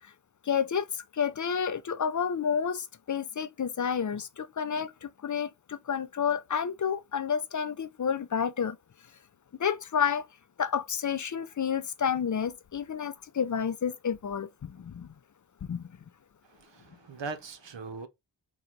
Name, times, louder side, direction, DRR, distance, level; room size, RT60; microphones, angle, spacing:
voice 1, 0.5-8.8 9.6-10.3 10.6-15.1 15.7-15.8, left 7 dB, 45° left, 0.5 m, -30 dB
voice 2, 16.5-18.1, right 4 dB, 85° right, 0.8 m, -40 dB
3.9 x 2.3 x 4.5 m
wide cardioid pair, 70°, 43 cm